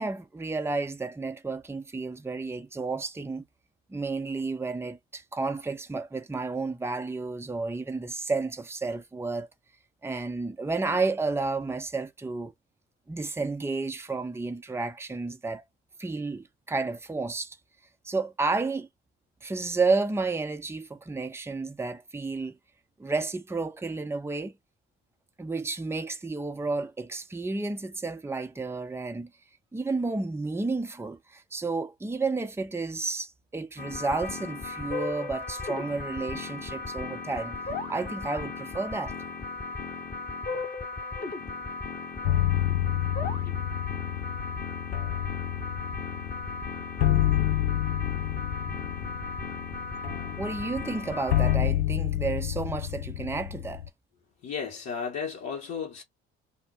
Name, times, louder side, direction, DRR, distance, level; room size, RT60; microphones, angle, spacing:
voice 1, 0.0-3.4 3.9-9.5 10.0-12.5 13.1-15.6 16.0-17.6 18.0-18.9 19.4-22.5 23.0-24.5 25.4-29.3 29.7-37.5 37.9-39.1 50.4-53.8, right 3 dB, 10° right, 0.8 m, -31 dB
sound 1, 33.8-51.6, left 4 dB, 30° left, 1.4 m, -36 dB
sound 2, 42.2-53.9, left 12 dB, 70° left, 0.5 m, -29 dB
voice 2, 54.4-56.0, left 6 dB, 55° left, 2.4 m, -35 dB
5.1 x 2.1 x 4.7 m
figure-of-eight pair, 50°, 33 cm